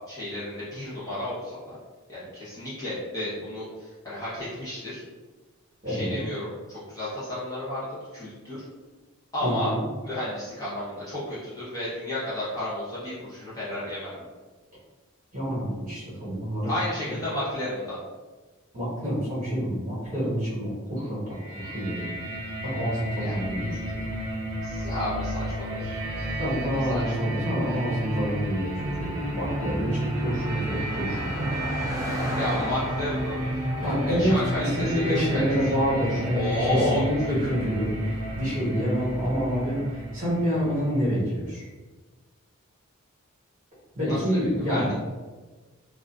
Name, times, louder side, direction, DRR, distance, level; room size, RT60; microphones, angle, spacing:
voice 1, 0.1-1.8 2.1-5.0 5.8-7.9 8.1-8.6 9.3-9.7 10.0-14.3 16.7-18.0 23.2-23.3 24.6-25.9 26.9-27.1 32.3-35.4 36.3-37.0 44.1-44.9, left 1 dB, 15° left, -11 dB, 0.7 m, -32 dB
voice 2, 5.8-6.2 9.4-9.8 15.3-16.7 17.1-17.2 18.7-21.4 21.6-22.3 22.6-23.8 26.4-31.8 33.8-41.6 43.9-44.9, equal, 35° right, -9 dB, 1.1 m, -27 dB
sound 1, 21.3-41.1, right 1 dB, 75° right, 0.7 m, -32 dB
Car passing by, 28.8-39.9, equal, 15° right, 0.4 m, -39 dB
2.5 x 2.3 x 2.3 m, 1.3 s
head